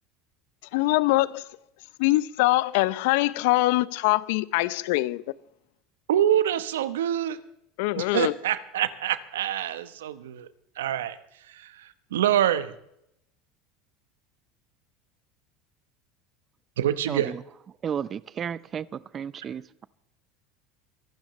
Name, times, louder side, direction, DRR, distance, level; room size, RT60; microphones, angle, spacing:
voice 1, 0.7-1.4 2.0-5.2 7.8-8.3, left 19 dB, 70° left, 0.6 m, -23 dB
voice 2, 6.1-7.4 8.0-10.5 10.8-11.2 11.5-12.7 16.8-17.3, right 11 dB, 85° right, 1.0 m, -26 dB
voice 3, 17.1-17.4 17.8-19.9, right 8 dB, 35° right, 0.6 m, -33 dB
24.0 x 12.0 x 3.2 m
hypercardioid pair, 90°, 0 cm